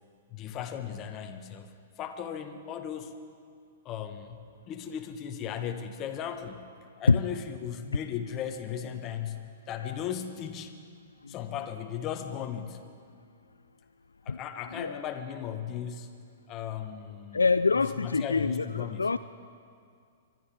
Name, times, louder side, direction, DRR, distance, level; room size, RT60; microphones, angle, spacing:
voice 1, 0.3-3.1 3.8-4.4 4.7-6.7 7.0-10.7 11.3-12.8 14.2-16.1 16.5-17.4 18.0-19.1, left 9 dB, 30° left, 7 dB, 1.2 m, -37 dB
voice 2, 17.3-19.2, left 4 dB, 80° left, 13 dB, 0.3 m, -25 dB
24.0 x 12.5 x 4.7 m, 2.3 s
figure-of-eight pair, 110°, 0 cm